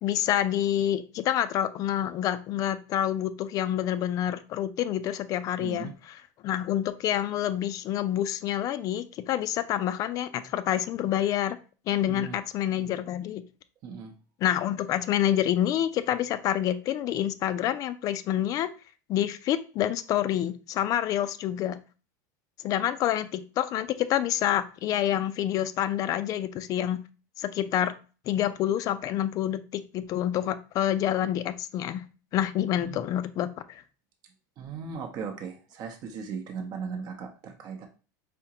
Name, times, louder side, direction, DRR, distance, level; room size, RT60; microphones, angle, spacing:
voice 1, 0.0-5.9 6.4-11.6 11.9-13.4 14.4-18.7 19.1-21.8 22.6-27.0 27.4-27.9 28.3-32.0 32.3-33.8, left 11 dB, 35° left, 12 dB, 0.4 m, -27 dB
voice 2, 5.6-5.9 12.1-12.4 13.8-14.1 32.8-33.0 34.6-37.9, right 6 dB, 40° right, 3 dB, 0.7 m, -37 dB
4.8 x 3.5 x 2.8 m, 0.35 s
supercardioid pair, 150°, 10 cm